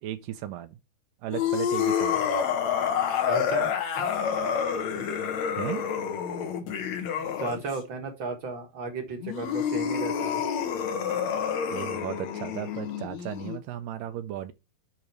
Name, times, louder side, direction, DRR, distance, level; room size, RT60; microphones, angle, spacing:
voice 1, 0.0-0.8 1.2-2.3 5.5-5.9 11.7-14.5, right 12 dB, 80° right, 2.1 m, -35 dB
sound 1, 1.3-7.8 9.2-13.6, left 7 dB, 60° left, 2.2 m, -28 dB
voice 2, 3.3-3.7 4.9-5.1 6.6-6.7 7.4-10.4, right 4 dB, 50° right, 1.4 m, -34 dB
10.5 x 3.8 x 4.5 m
omnidirectional pair, 4.2 m